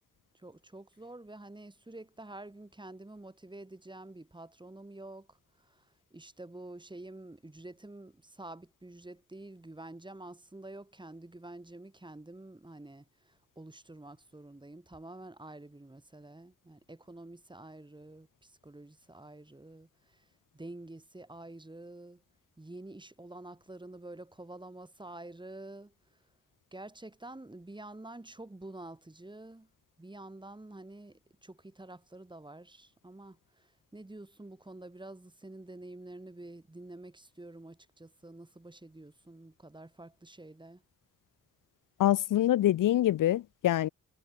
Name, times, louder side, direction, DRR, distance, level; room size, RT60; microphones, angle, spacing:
voice 1, 0.3-20.3 20.5-22.2 22.6-25.9 26.7-29.7 30.0-40.8, right 2 dB, 15° right, 6.1 m, -48 dB
voice 2, 42.0-43.9, left 13 dB, 80° left, 0.5 m, -25 dB
wide cardioid pair, 160°, 31 cm